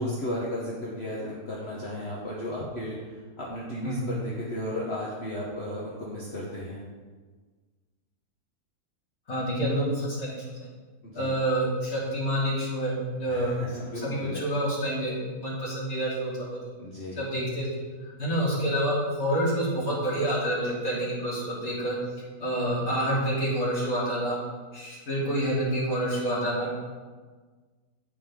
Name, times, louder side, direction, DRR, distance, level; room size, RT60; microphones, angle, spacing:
voice 1, 0.0-6.8 11.0-11.3 13.3-14.4 16.8-17.3, left 1 dB, 45° left, -5 dB, 1.5 m, -34 dB
voice 2, 9.3-10.7 11.1-13.6 14.0-16.6 17.2-17.8 18.2-22.0 22.4-24.4 24.7-26.7, right 1 dB, 65° left, -7 dB, 3.6 m, -28 dB
15.5 x 5.4 x 3.8 m, 1.4 s
omnidirectional pair, 1.7 m